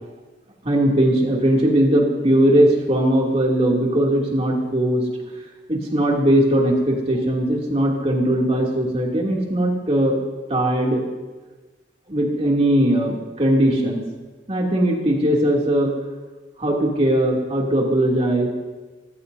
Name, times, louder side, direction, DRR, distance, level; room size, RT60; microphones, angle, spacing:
voice 1, 0.6-5.1 5.7-10.2 10.5-11.0 12.1-14.0 14.5-15.9 16.6-18.5, right 1 dB, 35° right, -2 dB, 2.8 m, -19 dB
24.5 x 15.0 x 2.8 m, 1.2 s
head